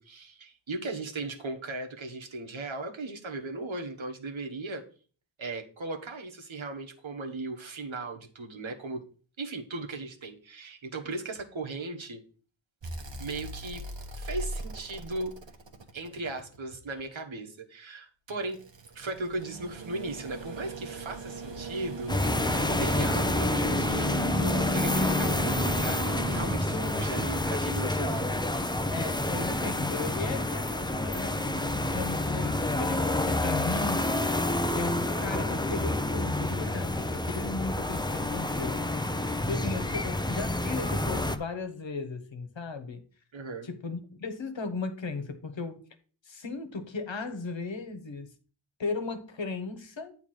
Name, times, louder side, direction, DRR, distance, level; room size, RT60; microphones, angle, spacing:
voice 1, 0.0-4.8 5.4-9.0 9.4-12.2 13.2-13.8 14.1-15.3 15.9-18.6 18.9-22.1 22.4-28.7 43.3-43.7, right 2 dB, 90° right, 1.4 m, -37 dB
sound 1, 12.8-17.0 18.3-29.5 31.0-31.1, right 3 dB, 75° right, 1.2 m, -39 dB
sound 2, 22.1-41.4, left 2 dB, 10° left, 0.6 m, -28 dB
voice 2, 26.7-27.2 28.9-34.0 34.7-39.0 39.4-43.0 43.6-45.8 46.2-48.3 48.8-50.1, left 4 dB, 75° left, 1.3 m, -36 dB
8.8 x 3.4 x 6.4 m
wide cardioid pair, 55°, 45 cm